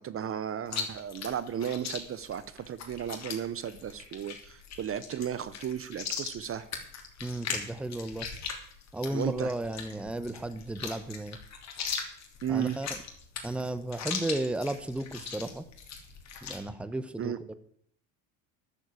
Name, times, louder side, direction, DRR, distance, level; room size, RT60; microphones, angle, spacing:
voice 1, 0.0-6.7 9.1-9.5 12.4-12.8 17.2-17.4, right 9 dB, 35° right, 15 dB, 0.8 m, -34 dB
Chewing mastication, 0.7-16.6, left 6 dB, 40° left, 3.2 m, -39 dB
voice 2, 7.2-8.3 8.9-11.4 12.5-13.0 13.4-15.6 16.4-17.5, right 1 dB, 5° right, 13 dB, 0.9 m, -34 dB
11.0 x 7.3 x 8.3 m, 0.65 s
supercardioid pair, 95°, 39 cm